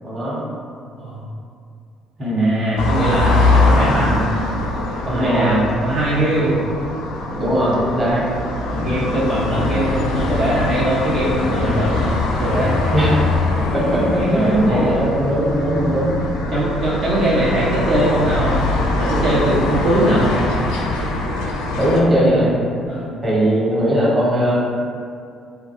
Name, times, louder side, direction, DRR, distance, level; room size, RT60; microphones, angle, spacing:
voice 1, 0.0-0.4 2.2-2.6 5.1-5.6 7.3-8.2 8.7-9.1 12.9-13.2 13.7-16.2 21.8-22.5 23.2-24.6, equal, 25° right, -7 dB, 0.9 m, -19 dB
voice 2, 2.2-4.2 4.9-6.6 8.6-12.8 14.1-15.0 16.5-18.6 19.0-20.4 22.8-23.1, right 1 dB, 60° right, -7 dB, 0.5 m, -21 dB
sound 1, 2.8-22.0, left 2 dB, 90° left, 0.3 m, -22 dB
2.3 x 2.1 x 2.9 m, 2.3 s
cardioid pair, 85°, 0 cm